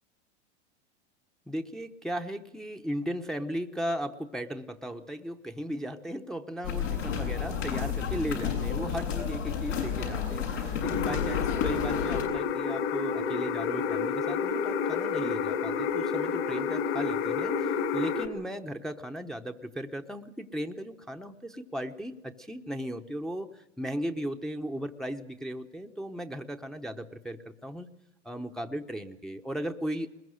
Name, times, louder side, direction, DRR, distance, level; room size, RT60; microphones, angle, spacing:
voice 1, 1.5-27.9 28.2-30.1, equal, ahead, 3 dB, 0.9 m, -36 dB
sound 1, 6.6-12.2, left 7 dB, 90° left, 7.6 m, -31 dB
sound 2, 10.8-18.3, left 6 dB, 55° left, 2.9 m, -30 dB
21.5 x 20.5 x 6.5 m, 0.91 s
hypercardioid pair, 110°, 36 cm